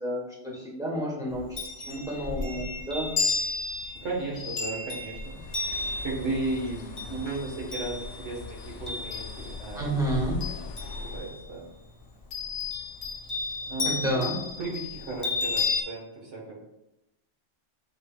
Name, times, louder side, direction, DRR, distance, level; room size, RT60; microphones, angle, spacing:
voice 1, 0.0-1.6 1.8-3.1 9.7-10.3 13.8-14.4, right 1 dB, 5° right, -4 dB, 1.1 m, -30 dB
Chime, 1.3-9.8 10.1-11.5 12.3-15.8, left 4 dB, 35° left, 0.8 m, -33 dB
voice 2, 3.9-5.7 6.0-9.9 10.9-11.7 13.6-14.3 14.6-16.6, right 2 dB, 70° right, -3 dB, 1.6 m, -35 dB
Bird, 5.1-11.4, left 3 dB, 75° left, 0.9 m, -40 dB
7.0 x 3.3 x 2.3 m, 0.91 s
omnidirectional pair, 1.3 m